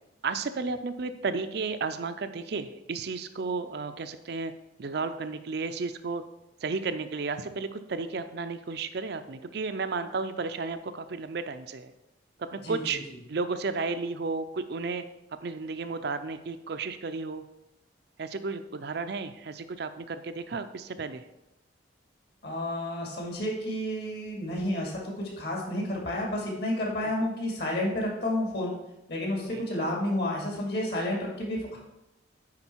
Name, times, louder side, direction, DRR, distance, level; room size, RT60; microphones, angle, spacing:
voice 1, 0.2-4.5 4.8-6.2 6.6-11.9 12.4-13.0 13.3-15.0 15.4-17.4 18.2-21.2 29.5-29.6, right 4 dB, 55° right, 9 dB, 0.5 m, -33 dB
voice 2, 12.6-13.0 22.4-28.8 29.1-31.8, left 1 dB, 55° left, -1 dB, 2.3 m, -31 dB
9.7 x 4.5 x 4.5 m, 0.89 s
head